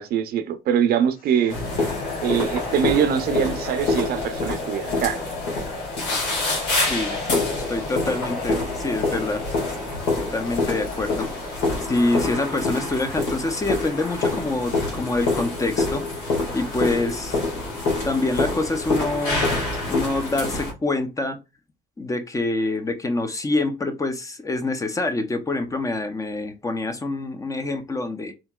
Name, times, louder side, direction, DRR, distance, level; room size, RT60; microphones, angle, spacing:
voice 1, 0.0-1.6 2.2-5.2, right 8 dB, 65° right, 0.5 m, -23 dB
sound 1, 1.2-12.3, left 3 dB, 55° left, 1.1 m, -34 dB
sound 2, 1.5-20.7, left 2 dB, 85° left, 1.7 m, -26 dB
voice 2, 6.9-9.4 10.3-11.3 11.9-16.0 16.5-17.4 18.0-19.5 19.8-21.4 22.0-28.3, left 2 dB, 20° left, 0.5 m, -26 dB
3.5 x 2.8 x 2.3 m
cardioid pair, 110°, 17 cm